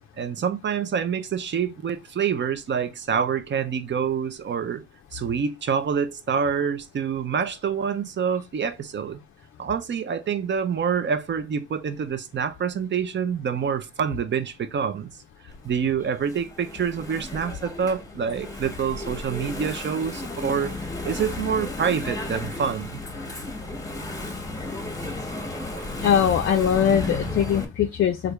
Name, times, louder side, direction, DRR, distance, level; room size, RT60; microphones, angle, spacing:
voice 1, 0.2-4.8 5.1-9.2 9.6-15.1 15.6-20.8 21.0-23.0, right 7 dB, 40° right, 0.5 m, -26 dB
Engine / Mechanisms, 15.5-27.7, left 2 dB, 10° left, 0.9 m, -34 dB
voice 2, 26.0-28.3, left 8 dB, 45° left, 0.5 m, -21 dB
3.3 x 2.5 x 3.1 m
cardioid pair, 90°, 30 cm